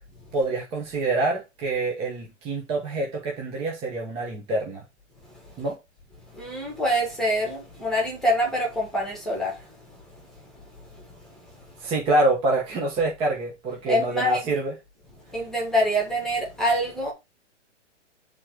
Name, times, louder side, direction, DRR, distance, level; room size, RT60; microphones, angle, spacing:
voice 1, 0.3-4.8 5.6-5.8 11.8-14.7, right 2 dB, 15° right, 1.2 m, -26 dB
voice 2, 5.3-5.6 6.3-10.4 10.9-11.3 13.9-14.4 15.3-17.1, equal, ahead, 1.9 m, -26 dB
9.7 x 3.9 x 4.7 m
hypercardioid pair, 165°, 36 cm